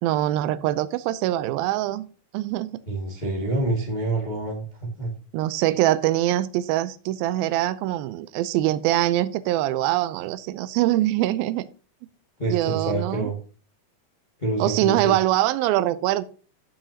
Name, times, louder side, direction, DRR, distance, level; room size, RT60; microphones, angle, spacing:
voice 1, 0.0-2.1 2.3-2.7 5.3-11.7 12.5-13.3 14.6-16.2, right 14 dB, 85° right, 2.4 m, -23 dB
voice 2, 2.9-4.6 5.0-5.1 12.4-13.3 14.4-15.1, right 2 dB, 70° left, 0.4 m, -27 dB
16.0 x 5.9 x 2.8 m
omnidirectional pair, 4.2 m